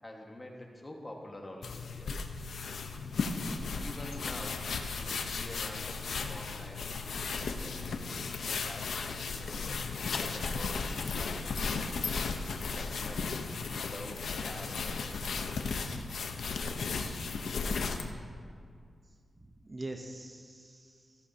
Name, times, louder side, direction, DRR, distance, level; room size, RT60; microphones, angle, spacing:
voice 1, 0.0-2.2 3.1-4.7 5.0-9.0 9.3-12.0 12.5-13.2 13.7-15.2, left 1 dB, 20° left, 0 dB, 1.5 m, -47 dB
sound 1, 1.6-18.1, left 4 dB, 85° left, 0.8 m, -35 dB
voice 2, 2.9-3.5 19.6-21.2, right 2 dB, 25° right, 3 dB, 0.7 m, -44 dB
15.0 x 14.0 x 2.8 m, 2.2 s
wide cardioid pair, 130°, 0 cm